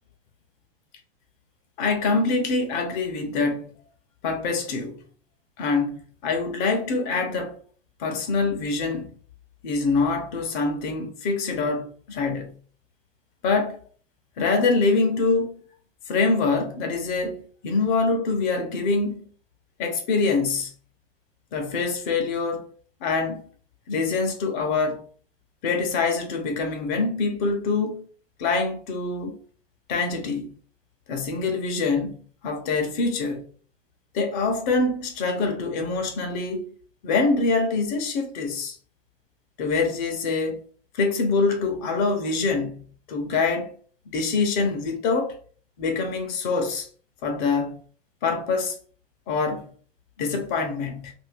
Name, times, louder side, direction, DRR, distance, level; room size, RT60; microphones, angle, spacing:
voice 1, 1.8-3.7 4.2-5.0 5.6-7.6 8.0-9.1 9.6-12.5 13.4-13.8 14.4-15.6 16.1-19.3 19.8-20.7 21.5-22.7 23.0-23.4 23.9-25.0 25.6-28.0 28.4-29.4 29.9-30.5 31.1-33.5 34.1-36.6 37.0-38.7 39.6-40.6 40.9-43.7 44.1-45.4 45.8-46.9 47.2-47.8 48.2-48.8 49.3-49.7 50.2-51.1, left 4 dB, 45° left, 0.9 m, -25 dB
2.8 x 2.7 x 3.3 m
hypercardioid pair, 135°, 33 cm